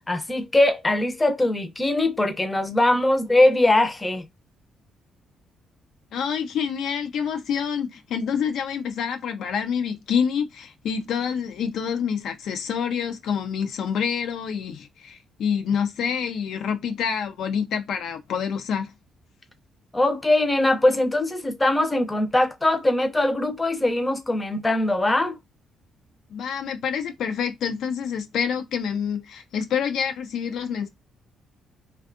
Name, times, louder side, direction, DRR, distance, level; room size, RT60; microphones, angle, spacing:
voice 1, 0.1-4.3 19.9-25.4, left 1 dB, 15° left, 0.5 m, -21 dB
voice 2, 6.1-18.9 26.3-30.9, left 7 dB, 75° left, 0.3 m, -27 dB
2.6 x 2.2 x 2.4 m
cardioid pair, 90°, 0 cm